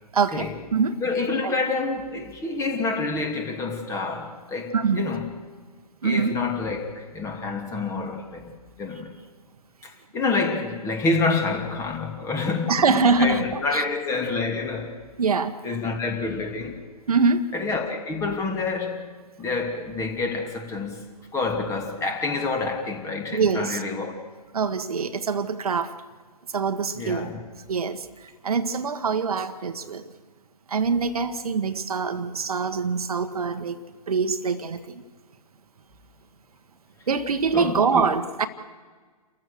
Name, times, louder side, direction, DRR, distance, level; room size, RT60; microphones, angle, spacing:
voice 1, 0.1-1.0 1.4-1.5 4.7-5.0 6.0-6.3 12.7-13.8 15.2-15.5 17.1-17.4 23.3-23.8 24.5-25.9 26.5-27.3 27.7-28.1 28.4-30.1 30.7-33.8 34.1-35.0 37.1-38.5, right 5 dB, 65° right, 1.5 m, -24 dB
voice 2, 1.0-5.3 6.0-8.5 8.8-9.1 9.8-15.0 15.6-16.8 17.5-19.1 19.4-24.2 26.9-27.4 37.5-38.1, left 3 dB, 15° left, 2.8 m, -28 dB
29.0 x 15.0 x 6.5 m
figure-of-eight pair, 130°, 20 cm